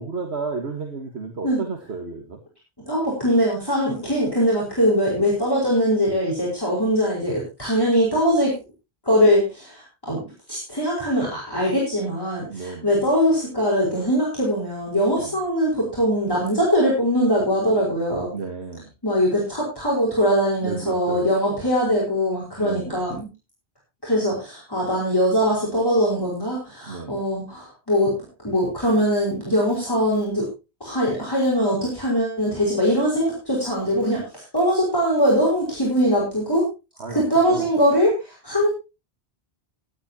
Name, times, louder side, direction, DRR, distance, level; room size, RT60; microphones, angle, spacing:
voice 1, 0.0-2.4 12.5-12.9 15.2-15.3 18.3-18.9 20.6-21.7 22.6-23.0 26.9-27.1 37.0-37.2 37.5-37.7, right 4 dB, 75° right, 4 dB, 1.8 m, -32 dB
voice 2, 2.9-8.5 9.0-10.2 10.5-18.3 19.0-23.3 24.0-28.1 28.4-30.5 30.8-36.7 37.1-38.7, equal, 20° left, -5 dB, 4.8 m, -21 dB
17.5 x 11.0 x 2.9 m, 0.28 s
omnidirectional pair, 1.1 m